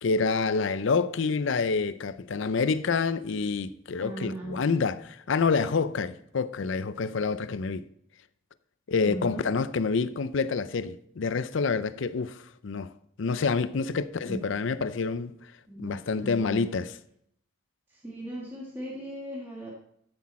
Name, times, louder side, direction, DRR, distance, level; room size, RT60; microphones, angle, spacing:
voice 1, 0.0-7.9 8.9-12.9 13.2-15.5 15.8-16.9, left 4 dB, 65° left, 0.5 m, -27 dB
voice 2, 4.0-4.8 9.0-9.4 14.3-14.5 15.7-16.7 17.9-19.7, right 1 dB, 10° right, 1.6 m, -38 dB
12.5 x 6.1 x 4.2 m
head